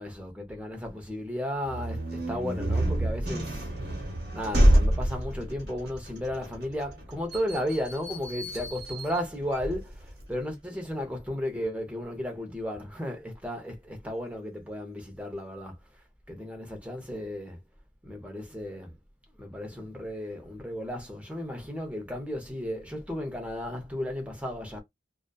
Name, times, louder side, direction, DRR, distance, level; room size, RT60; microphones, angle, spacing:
voice 1, 0.0-3.7 4.3-15.8 16.3-17.6 18.0-18.9 19.4-24.8, left 1 dB, 5° right, 0.6 m, -34 dB
sound 1, 1.6-10.3, right 1 dB, 60° right, 1.0 m, -28 dB
2.5 x 2.3 x 2.2 m
head